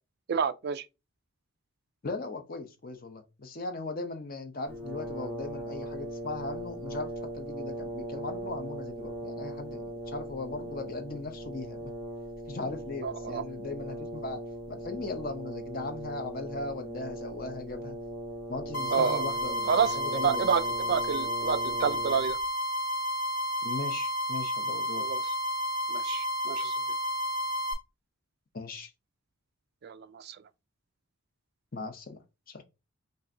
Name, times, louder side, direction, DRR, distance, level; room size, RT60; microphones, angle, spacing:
voice 1, 0.3-0.9 13.0-13.4 18.9-19.2 19.7-20.0 20.2-20.6 20.9-22.4 25.0-25.2 25.9-26.8 29.8-30.4, right 6 dB, 50° right, 0.3 m, -29 dB
voice 2, 2.0-11.9 12.5-14.4 14.7-18.0 18.5-20.5 23.6-25.3 28.5-28.9 31.7-32.2 32.5-32.6, left 3 dB, 40° left, 0.7 m, -38 dB
Brass instrument, 4.7-22.5, right 1 dB, 10° left, 1.0 m, -39 dB
sound 1, 18.7-27.7, equal, 85° left, 1.6 m, -31 dB
5.4 x 2.6 x 2.6 m
head